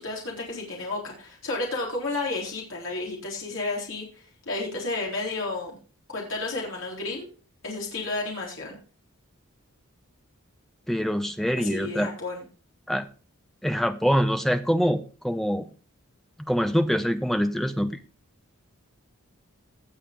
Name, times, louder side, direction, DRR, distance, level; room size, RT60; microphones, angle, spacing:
voice 1, 0.0-5.8 6.1-7.3 7.6-8.8 11.6-12.4, left 3 dB, 60° left, -2 dB, 3.9 m, -32 dB
voice 2, 10.9-12.1 12.9-13.1 13.6-15.7 16.5-18.0, equal, ahead, 9 dB, 0.7 m, -24 dB
18.0 x 6.6 x 3.7 m, 0.36 s
head